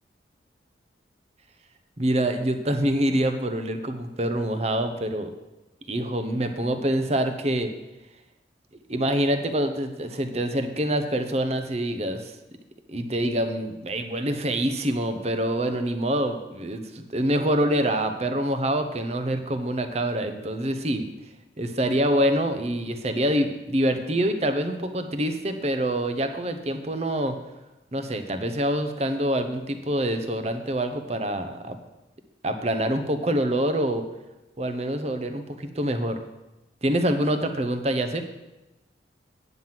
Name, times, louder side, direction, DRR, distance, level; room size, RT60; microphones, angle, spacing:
voice 1, 2.0-5.3 5.9-7.7 8.9-12.3 12.9-21.1 21.6-27.4 27.9-31.8 32.4-34.0 34.6-36.2 36.8-38.2, right 1 dB, 35° right, 7 dB, 0.8 m, -26 dB
9.3 x 5.8 x 7.5 m, 1.0 s
head